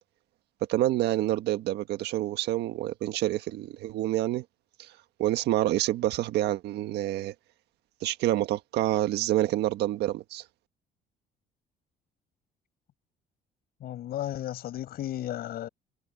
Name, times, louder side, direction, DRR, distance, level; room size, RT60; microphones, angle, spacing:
voice 1, 0.7-4.4 4.8-4.9 5.2-7.3 8.0-10.4, right 14 dB, 80° right, 1.5 m, -27 dB
voice 2, 13.8-15.7, left 12 dB, 65° left, 5.1 m, -34 dB
cardioid pair, 110°, 17 cm